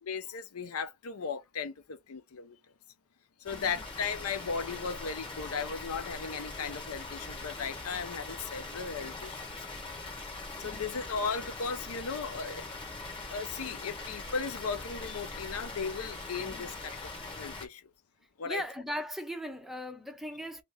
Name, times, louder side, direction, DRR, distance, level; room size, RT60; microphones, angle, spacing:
voice 1, 0.0-2.6 3.4-9.7 10.6-12.6 13.3-17.1 17.4-17.8 18.4-18.6, left 5 dB, 90° left, 0.6 m, -36 dB
Water, 3.4-17.7, left 3 dB, 25° left, 1.0 m, -42 dB
voice 2, 3.5-3.8 10.7-10.8 16.5-16.7 18.4-20.6, equal, ahead, 0.4 m, -39 dB
2.8 x 2.5 x 3.4 m
head